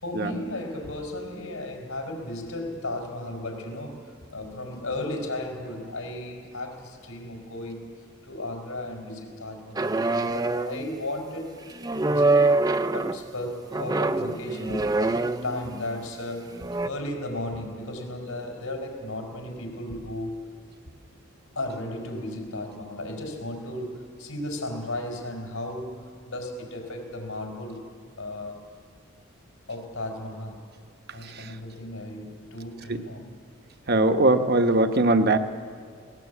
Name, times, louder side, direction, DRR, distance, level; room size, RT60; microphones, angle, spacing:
voice 1, 0.0-7.8 8.2-11.6 11.9-16.5 16.8-20.3 21.5-27.8 28.2-28.6 29.7-30.6 31.1-33.3, left 1 dB, 80° left, 2 dB, 5.0 m, -35 dB
sound 1, 9.8-10.9 11.8-13.2 13.7-15.7 16.6-16.9, right 2 dB, 20° right, 0.5 m, -24 dB
voice 2, 31.2-31.5 32.9-33.0 33.9-35.4, right 2 dB, 45° right, 7 dB, 1.0 m, -21 dB
21.0 x 19.0 x 8.3 m, 2.2 s
head